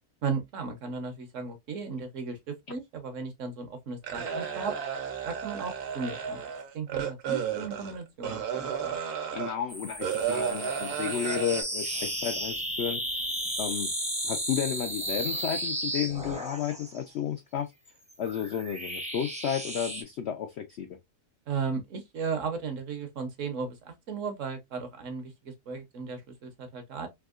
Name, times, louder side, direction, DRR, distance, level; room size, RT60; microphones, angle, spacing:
voice 1, 0.2-4.7 5.2-6.4 6.7-9.0 21.5-27.1, right 5 dB, 60° right, 1.0 m, -35 dB
sound 1, 4.0-9.5 10.0-11.6, right 7 dB, 75° right, 1.4 m, -33 dB
voice 2, 9.3-13.3 13.6-13.9 14.2-17.7 18.2-21.0, left 9 dB, 75° left, 0.6 m, -32 dB
sound 2, 9.7-17.0 17.9-20.0, right 1 dB, 10° right, 0.5 m, -34 dB
3.6 x 2.7 x 2.3 m
omnidirectional pair, 1.6 m